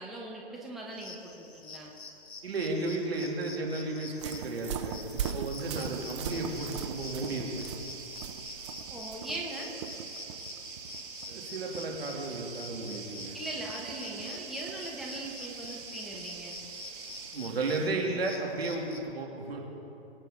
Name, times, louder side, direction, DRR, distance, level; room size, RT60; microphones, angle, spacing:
voice 1, 0.0-1.9 8.9-9.7 13.3-16.6, right 2 dB, ahead, -3 dB, 1.1 m, -40 dB
sound 1, 0.9-19.0, left 4 dB, 80° left, 2.4 m, -47 dB
voice 2, 2.4-7.7 11.3-13.3 17.3-19.6, right 2 dB, 70° right, 0 dB, 3.0 m, -34 dB
sound 2, 4.2-17.9, right 9 dB, 30° right, 0.5 m, -42 dB
sound 3, 5.6-17.4, right 5 dB, 55° right, 3.4 m, -45 dB
24.0 x 9.2 x 3.9 m, 2.8 s
hypercardioid pair, 140°, 31 cm